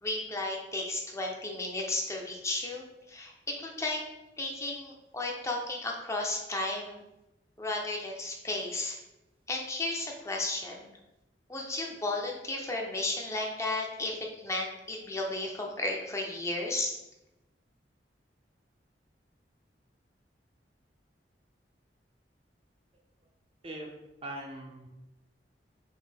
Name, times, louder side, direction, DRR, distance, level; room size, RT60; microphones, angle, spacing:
voice 1, 0.0-3.3 3.6-4.0 4.4-7.0 7.6-9.0 9.5-11.0 11.5-17.0, left 2 dB, 15° left, 0 dB, 0.6 m, -34 dB
voice 2, 24.2-24.9, right 1 dB, 35° right, 0 dB, 0.5 m, -40 dB
5.3 x 2.1 x 3.3 m, 0.94 s
head